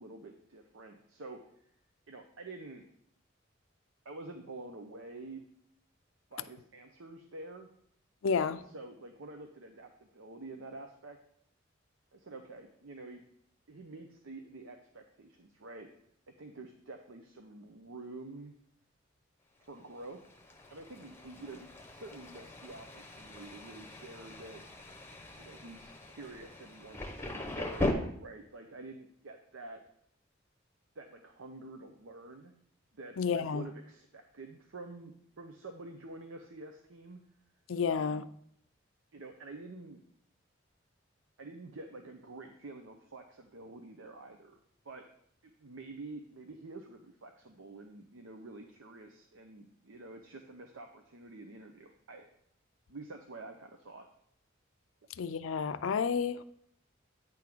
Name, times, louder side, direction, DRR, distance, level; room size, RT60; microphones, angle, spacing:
voice 1, 0.0-1.4 2.1-2.9 4.0-5.5 6.3-7.7 8.3-11.2 12.1-13.2 13.7-15.9 16.4-18.5 19.7-20.2 20.7-24.6 25.4-29.8 31.0-32.5 32.9-37.2 37.9-38.3 39.1-40.0 41.4-44.6 44.8-45.0 45.4-52.4 52.9-54.1, right 2 dB, 80° right, 4 dB, 0.7 m, -48 dB
voice 2, 8.2-8.6 33.2-33.7 37.7-38.3 55.2-56.4, left 6 dB, 80° left, 13 dB, 0.4 m, -31 dB
Thunder, 19.8-27.9, left 2 dB, 10° left, 0.8 m, -40 dB
9.0 x 3.6 x 6.0 m, 0.67 s
head